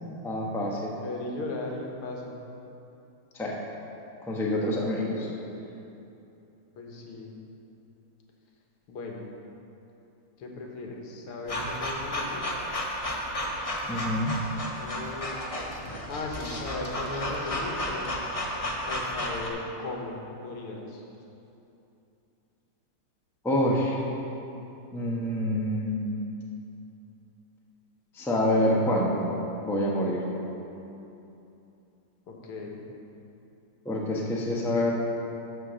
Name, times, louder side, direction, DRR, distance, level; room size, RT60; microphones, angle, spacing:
voice 1, 0.2-0.9 3.3-3.6 4.2-5.3 13.9-14.4 23.4-24.1 24.9-26.2 28.1-29.3 29.6-30.2 33.8-34.9, left 1 dB, ahead, -3 dB, 0.6 m, -27 dB
voice 2, 0.8-2.3 6.8-7.4 8.9-9.3 10.4-12.4 14.6-15.4 16.1-18.1 18.8-21.0 32.3-32.8, left 2 dB, 80° left, 0 dB, 2.1 m, -37 dB
sound 1, 11.5-19.5, left 1 dB, 50° left, 0.4 m, -32 dB
12.5 x 4.6 x 6.3 m, 2.9 s
omnidirectional pair, 2.4 m